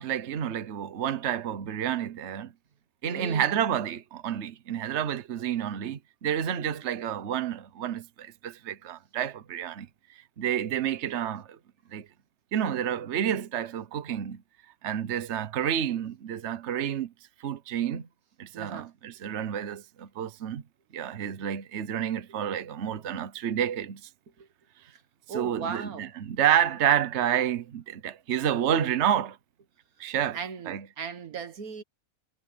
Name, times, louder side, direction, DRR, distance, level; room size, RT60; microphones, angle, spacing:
voice 1, 0.0-2.5 3.0-9.9 10.4-11.6 11.9-12.1 12.5-14.4 14.8-17.1 17.4-18.1 18.4-20.6 20.9-24.0 25.3-29.4 30.0-30.4 30.7-30.8, right 9 dB, 55° right, 1.2 m, -29 dB
voice 2, 3.1-3.6 18.5-18.9 24.4-24.5 25.3-26.1 30.3-31.8, right 6 dB, 85° right, 1.9 m, -37 dB
omnidirectional pair, 1.5 m